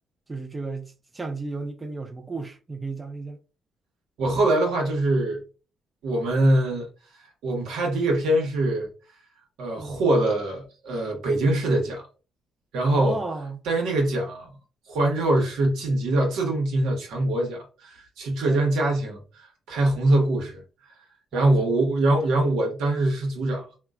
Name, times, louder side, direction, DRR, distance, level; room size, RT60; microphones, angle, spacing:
voice 1, 0.3-3.4 9.8-10.0 12.8-13.6 18.4-18.7 20.1-20.3 21.3-21.5, right 3 dB, 20° right, 0.4 m, -34 dB
voice 2, 4.2-5.4 6.0-6.9 7.4-8.9 9.6-12.0 12.7-13.2 13.7-14.5 14.9-20.6 21.3-23.7, right 1 dB, 85° right, 1.0 m, -23 dB
2.9 x 2.2 x 2.4 m
cardioid pair, 90°, 0 cm